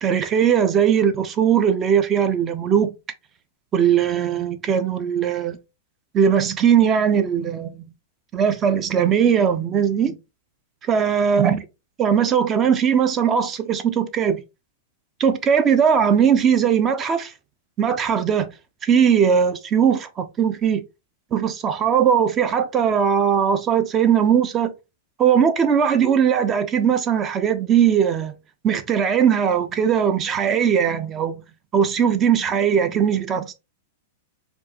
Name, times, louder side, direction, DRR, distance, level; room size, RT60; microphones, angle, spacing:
voice 1, 0.0-2.9 3.7-5.6 6.1-7.9 8.3-10.2 10.8-11.6 12.0-14.4 15.2-17.3 17.8-18.5 18.8-20.8 21.3-24.7 25.2-28.4 28.6-31.4 31.7-33.5, right 8 dB, 25° right, 0.6 m, -19 dB
4.5 x 2.3 x 2.9 m
hypercardioid pair, 125°, 0 cm